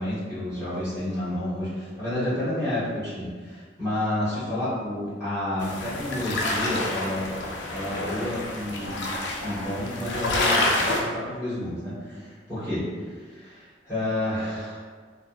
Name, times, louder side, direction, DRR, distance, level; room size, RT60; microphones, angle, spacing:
voice 1, 0.0-7.3 7.7-9.1 9.4-12.8 13.4-14.9, left 1 dB, 15° left, -14 dB, 1.2 m, -30 dB
sound 1, 5.6-11.0, left 2 dB, 85° left, 0.4 m, -28 dB
3.0 x 2.1 x 2.5 m, 1.5 s
head